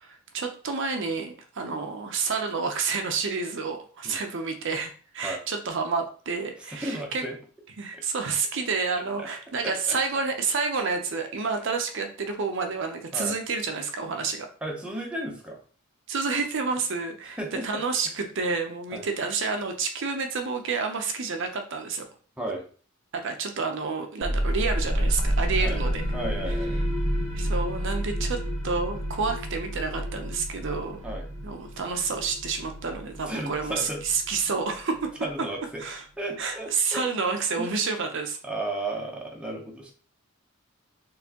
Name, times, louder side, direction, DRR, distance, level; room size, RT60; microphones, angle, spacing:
voice 1, 0.0-7.3 7.8-14.5 16.1-17.4 17.6-22.1 23.1-26.0 27.3-28.4 28.6-31.0 31.4-35.1 35.8-36.0 36.4-38.4, right 4 dB, 60° right, 5 dB, 0.6 m, -29 dB
voice 2, 6.7-7.4 7.9-8.0 9.2-9.3 9.6-10.0 13.1-13.4 14.6-15.6 17.4-17.8 18.9-19.1 22.4-22.6 25.6-25.8 26.1-26.9 31.0-31.3 33.3-34.0 35.2-35.8 36.2-37.1 37.6-37.7 38.4-39.9, right 1 dB, 5° right, -1 dB, 0.7 m, -34 dB
sound 1, 24.2-35.6, equal, 30° left, 1.6 m, -30 dB
4.3 x 3.2 x 2.8 m, 0.41 s
head